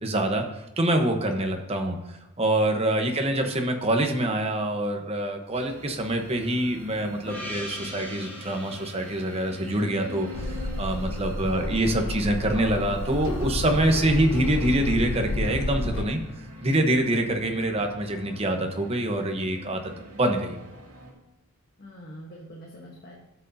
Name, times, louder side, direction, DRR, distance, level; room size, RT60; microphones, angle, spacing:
voice 1, 0.0-16.2 16.6-19.8 20.1-20.6, right 1 dB, 25° right, 4 dB, 1.0 m, -25 dB
sound 1, 5.5-21.1, equal, 75° right, 2.4 m, -45 dB
Gong, 7.3-12.0, left 1 dB, 10° left, 2.9 m, -42 dB
sound 2, 10.3-16.0, left 2 dB, 60° left, 0.8 m, -30 dB
voice 2, 11.3-11.8 21.8-23.2, equal, 45° left, -2 dB, 1.3 m, -45 dB
12.5 x 7.8 x 2.7 m, 0.93 s
head